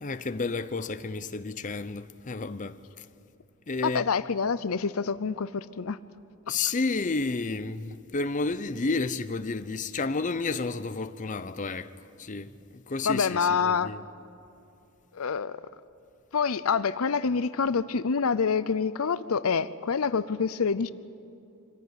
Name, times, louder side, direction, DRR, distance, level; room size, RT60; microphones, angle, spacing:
voice 1, 0.0-3.1 3.7-4.1 6.5-11.9 12.2-14.0, left 3 dB, 35° left, 0.6 m, -31 dB
voice 2, 3.8-6.0 13.0-13.9 15.1-15.6 16.3-20.9, left 5 dB, 70° left, 0.6 m, -27 dB
25.5 x 15.5 x 9.7 m
head